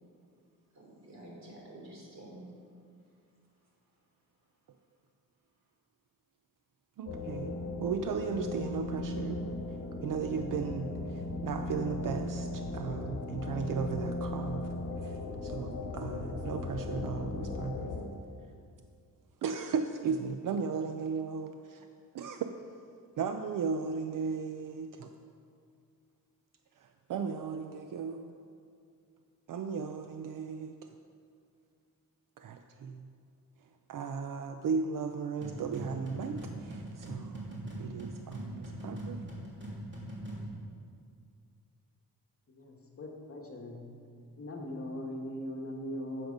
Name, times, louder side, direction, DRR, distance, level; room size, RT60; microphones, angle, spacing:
voice 1, 0.7-2.5 3.0-4.1, right 1 dB, 50° right, -2 dB, 3.1 m, -51 dB
voice 2, 7.0-9.4 10.0-14.7 15.0-17.9 19.4-21.9 22.1-22.5 23.2-25.1 26.8-28.4 29.5-30.9 32.4-33.1 33.9-39.2, right 5 dB, 65° right, 7 dB, 0.6 m, -36 dB
sound 1, 7.1-18.1, left 2 dB, 55° left, 1.3 m, -37 dB
sound 2, 35.4-40.5, right 1 dB, 30° right, 2.8 m, -41 dB
voice 3, 42.5-43.8 44.4-46.3, left 1 dB, 40° left, 0 dB, 1.5 m, -40 dB
13.0 x 7.7 x 5.3 m, 2.3 s
wide cardioid pair, 150°, 35 cm